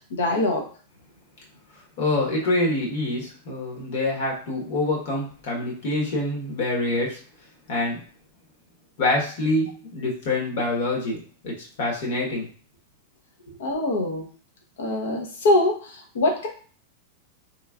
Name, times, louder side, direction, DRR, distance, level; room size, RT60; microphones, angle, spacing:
voice 1, 0.1-0.7 13.6-14.2 14.8-16.5, left 2 dB, 85° left, 2 dB, 0.8 m, -23 dB
voice 2, 2.0-7.2 7.7-8.0 9.0-12.5, left 2 dB, 60° left, -2 dB, 1.3 m, -26 dB
3.3 x 3.0 x 2.4 m, 0.42 s
supercardioid pair, 150°, 0 cm